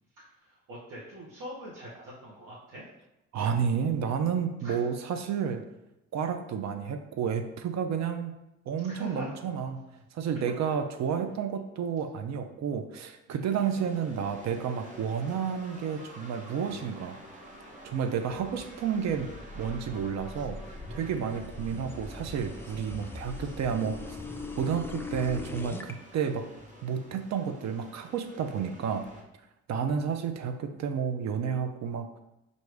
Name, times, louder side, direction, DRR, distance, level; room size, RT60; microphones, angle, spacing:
voice 1, 0.2-2.8 4.6-4.8 8.9-9.3 13.3-13.5, equal, 90° right, -7 dB, 1.0 m, -43 dB
voice 2, 3.3-5.6 6.1-8.3 8.7-9.8 10.1-17.2 17.8-24.2 24.6-26.5 26.8-29.1 29.7-32.2, right 7 dB, 65° right, 7 dB, 0.5 m, -31 dB
sound 1, 13.5-29.2, right 1 dB, 25° right, 0.9 m, -49 dB
sound 2, 17.9-25.9, left 3 dB, 10° left, 0.4 m, -41 dB
4.7 x 2.7 x 3.3 m, 0.89 s
cardioid pair, 90°, 30 cm